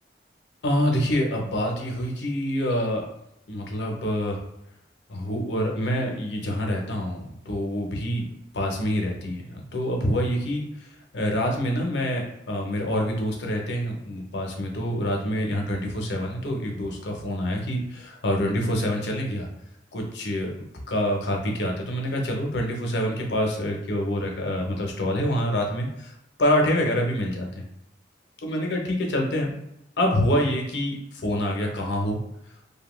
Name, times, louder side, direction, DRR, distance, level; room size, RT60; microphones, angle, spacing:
voice 1, 0.6-3.0 3.5-4.4 5.1-8.2 8.5-19.5 19.9-20.5 20.9-27.7 28.4-29.6 30.0-32.2, equal, 70° left, 1 dB, 0.7 m, -26 dB
2.7 x 2.2 x 3.0 m, 0.82 s
head